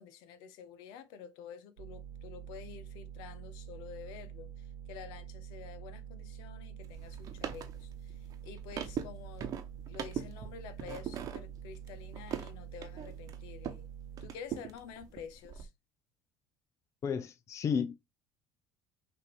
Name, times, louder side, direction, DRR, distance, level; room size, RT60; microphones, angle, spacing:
voice 1, 0.0-9.5 9.9-13.9 14.2-15.7, left 7 dB, 75° left, 0.7 m, -49 dB
sound 1, 1.8-14.3, right 9 dB, 90° right, 0.9 m, -47 dB
sound 2, 6.8-13.9 14.2-15.6, right 8 dB, 50° right, 0.9 m, -42 dB
voice 2, 17.0-18.0, left 6 dB, 40° left, 0.5 m, -32 dB
5.7 x 2.7 x 3.0 m
supercardioid pair, 80°, 8 cm